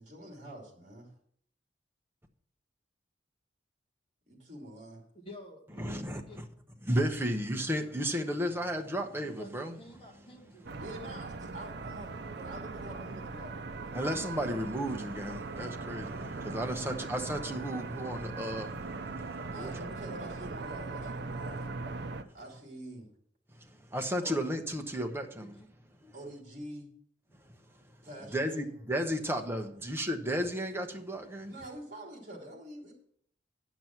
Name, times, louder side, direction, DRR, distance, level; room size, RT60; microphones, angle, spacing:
voice 1, 0.0-1.1 4.3-5.0 10.8-14.0 19.5-21.7 22.3-23.1 24.2-24.4 26.1-26.9 28.0-28.7 31.5-32.9, right 1 dB, 40° right, 2.9 m, -46 dB
voice 2, 5.1-6.4 9.1-10.8 25.4-25.7, left 2 dB, 30° left, 1.7 m, -51 dB
voice 3, 5.8-6.4 6.8-9.8 13.9-18.7 19.2-19.7 23.5-25.5 26.0-26.1 28.3-31.5, equal, 15° right, 0.9 m, -33 dB
sound 1, 10.7-22.2, right 3 dB, 60° right, 0.6 m, -40 dB
9.3 x 6.1 x 5.9 m
head